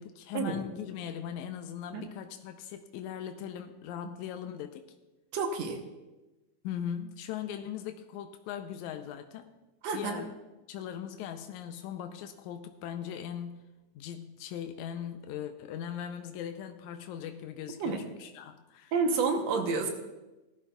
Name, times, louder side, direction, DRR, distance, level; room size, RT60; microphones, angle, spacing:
voice 1, 0.0-4.9 6.6-9.5 9.9-10.3 10.7-13.7 14.0-18.9, left 9 dB, 90° left, 7 dB, 2.0 m, -39 dB
voice 2, 5.3-5.8 9.8-10.2 17.8-18.1 18.9-19.9, right 4 dB, 70° right, 4 dB, 2.0 m, -29 dB
18.0 x 12.0 x 2.3 m, 1.1 s
omnidirectional pair, 3.4 m